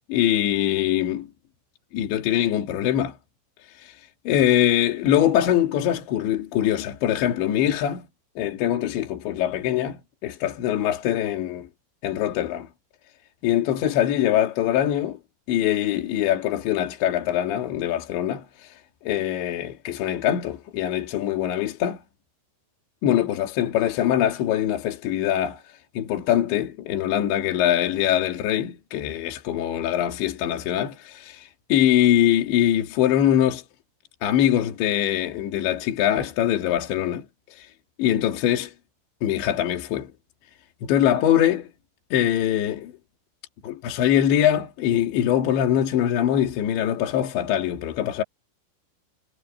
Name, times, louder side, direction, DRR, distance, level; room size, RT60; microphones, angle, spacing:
voice 1, 0.1-1.3 1.9-3.2 3.8-3.9 4.3-8.1 8.4-11.7 12.0-12.7 13.4-15.2 15.5-18.7 19.1-22.0 23.0-25.6 26.0-33.6 34.2-37.3 37.5-37.7 38.0-38.7 39.2-40.1 40.8-41.7 42.1-42.9 43.6-48.2, left 11 dB, 65° left, 4.3 m, -23 dB
omnidirectional pair, 5.8 m